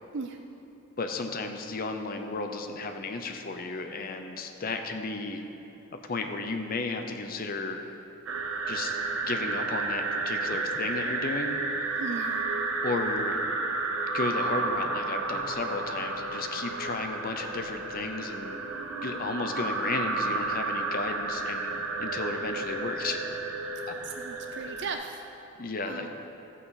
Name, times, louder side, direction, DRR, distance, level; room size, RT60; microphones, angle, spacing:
voice 1, 1.0-5.4 6.1-7.8 8.7-9.0 9.2-11.6 12.8-13.4 14.1-18.7 19.0-23.2 23.9-24.0 25.6-26.1, left 3 dB, 45° left, 5 dB, 0.7 m, -33 dB
sound 1, 8.3-24.9, right 3 dB, 85° right, 0.9 m, -32 dB
voice 2, 12.0-12.4 24.0-25.2 25.8-26.1, right 4 dB, 60° right, 5 dB, 0.5 m, -37 dB
sound 2, 13.9-17.9, left 4 dB, 85° left, 1.8 m, -46 dB
15.0 x 8.3 x 4.1 m, 2.9 s
head